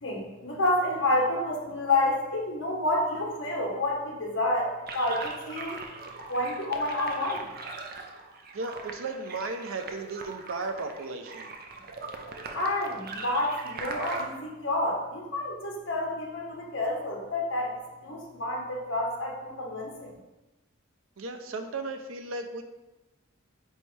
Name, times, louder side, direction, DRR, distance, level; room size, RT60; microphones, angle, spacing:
voice 1, 0.0-5.8 6.3-7.4 12.5-20.1, left 1 dB, 70° left, -1 dB, 1.3 m, -29 dB
sound 1, 4.9-14.3, right 3 dB, 45° right, 0.6 m, -40 dB
voice 2, 8.5-11.5 21.2-22.6, right 3 dB, 90° right, 7 dB, 0.6 m, -35 dB
8.8 x 3.2 x 3.3 m, 1.1 s
head